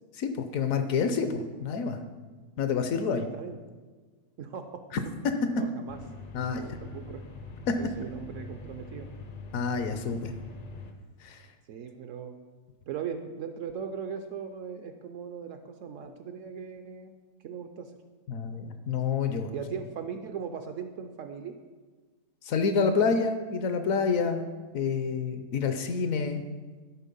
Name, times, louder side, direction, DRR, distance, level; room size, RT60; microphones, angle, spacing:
voice 1, 0.2-2.0 2.6-3.3 4.9-5.3 6.3-6.8 7.7-7.8 9.5-10.3 11.2-11.5 18.3-19.5 22.4-24.5 24.7-26.4, left 5 dB, 65° left, 8 dB, 1.0 m, -28 dB
voice 2, 2.9-3.6 4.4-4.8 5.5-6.0 6.5-7.3 7.8-9.1 11.7-12.3 12.9-17.1 17.4-17.9 19.5-21.6, right 7 dB, 70° right, 7 dB, 0.8 m, -39 dB
sound 1, 5.9-10.9, left 3 dB, 50° left, 0.6 m, -44 dB
11.0 x 4.2 x 5.3 m, 1.4 s
omnidirectional pair, 1.6 m